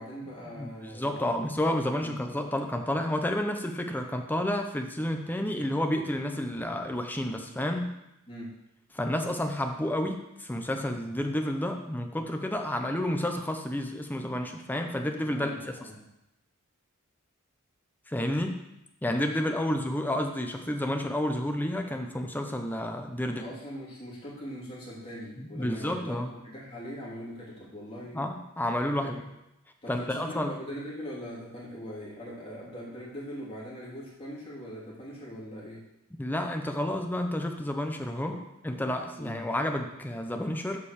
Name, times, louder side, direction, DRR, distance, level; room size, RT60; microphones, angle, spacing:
voice 1, 0.0-1.4 1.9-2.1 8.3-8.5 15.2-16.0 23.2-28.2 29.0-29.1 29.8-35.8 39.2-39.4, equal, 25° left, -7 dB, 3.0 m, -41 dB
voice 2, 0.6-8.0 8.9-15.5 15.8-15.9 18.1-18.6 19.0-23.4 25.4-26.3 28.1-29.2 29.9-30.5 36.2-38.4 38.6-40.8, left 1 dB, 10° left, 4 dB, 0.7 m, -30 dB
7.1 x 5.3 x 6.5 m, 0.87 s
head